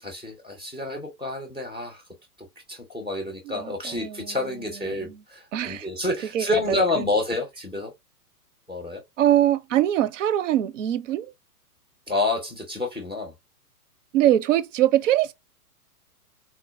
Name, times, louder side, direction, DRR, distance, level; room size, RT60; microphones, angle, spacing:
voice 1, 0.0-2.0 2.7-7.9 8.7-9.0 12.1-13.3, left 2 dB, ahead, 0.3 m, -28 dB
voice 2, 3.5-4.4 4.9-5.1 5.5-5.9 6.3-6.8 9.2-11.3 14.1-15.3, right 12 dB, 55° right, 0.5 m, -23 dB
4.2 x 2.1 x 2.5 m
hypercardioid pair, 125°, 46 cm